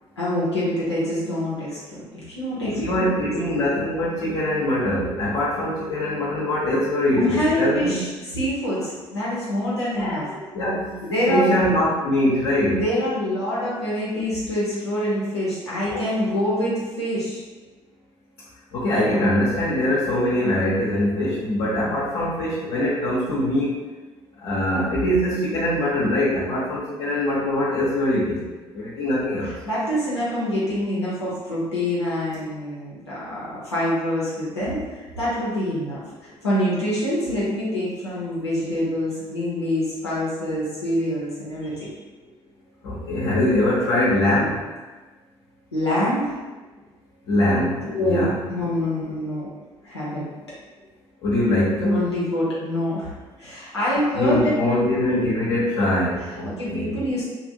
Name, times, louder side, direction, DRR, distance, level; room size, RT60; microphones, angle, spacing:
voice 1, 0.2-3.3 7.2-10.3 11.0-11.5 12.7-17.4 29.4-41.9 45.7-46.4 47.8-49.5 49.8-50.3 51.9-55.3 56.4-57.3, left 1 dB, 90° left, -8 dB, 0.6 m, -26 dB
voice 2, 2.6-8.0 10.0-11.0 11.3-12.8 15.9-16.0 18.7-23.8 24.4-28.4 28.7-29.5 42.8-44.6 47.3-48.4 51.2-52.0 54.1-57.0, left 1 dB, 55° left, -8 dB, 0.8 m, -22 dB
2.8 x 2.5 x 2.8 m, 1.2 s
figure-of-eight pair, 50°, 14 cm